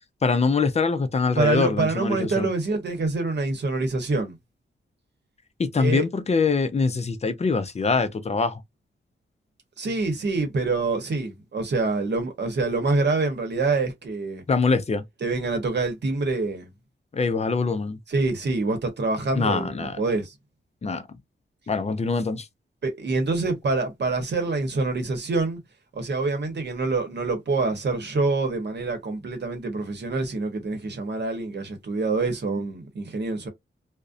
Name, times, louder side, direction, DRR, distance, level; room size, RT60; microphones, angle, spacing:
voice 1, 0.2-2.5 5.6-8.6 14.5-15.0 17.1-18.0 19.3-20.0 20.8-21.2 21.7-22.5, left 4 dB, 30° left, 0.4 m, -24 dB
voice 2, 1.4-4.4 5.8-6.0 9.8-14.4 15.2-16.7 18.1-20.3 22.8-25.6 25.9-33.5, right 3 dB, 60° right, 0.9 m, -26 dB
2.5 x 2.1 x 2.4 m
wide cardioid pair, 95°, 21 cm